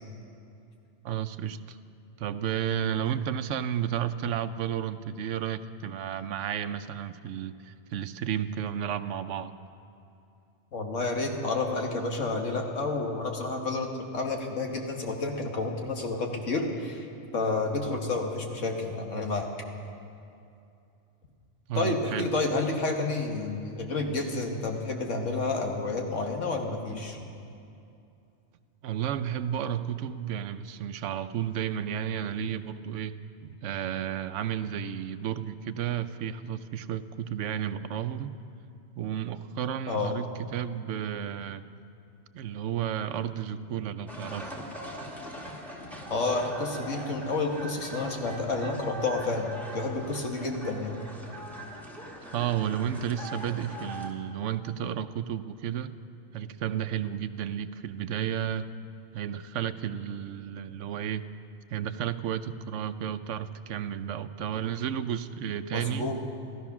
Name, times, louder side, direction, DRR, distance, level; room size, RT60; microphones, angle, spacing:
voice 1, 1.0-1.8 2.2-9.5 21.7-22.3 28.8-33.2 33.4-38.4 39.0-40.3 40.5-41.6 42.3-44.5 52.3-55.9 56.3-58.7 59.1-61.2 61.7-66.1, right 9 dB, 85° right, 12 dB, 0.9 m, -32 dB
voice 2, 10.7-17.1 17.3-19.5 21.7-27.2 39.9-40.1 46.1-51.0 65.7-66.2, left 3 dB, 90° left, 2 dB, 1.8 m, -30 dB
sound 1, 44.1-54.1, right 1 dB, ahead, 1.3 m, -41 dB
14.5 x 13.5 x 5.9 m, 2.6 s
omnidirectional pair, 1.2 m